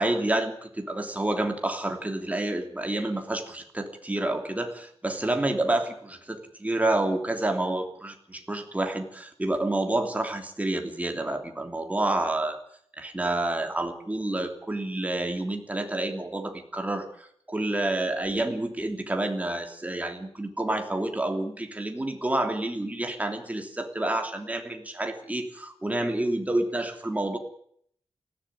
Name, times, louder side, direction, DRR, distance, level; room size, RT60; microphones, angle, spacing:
voice 1, 0.0-12.6 13.0-27.4, right 1 dB, 15° right, 4 dB, 3.0 m, -29 dB
19.0 x 15.0 x 9.9 m, 0.66 s
wide cardioid pair, 165°, 11 cm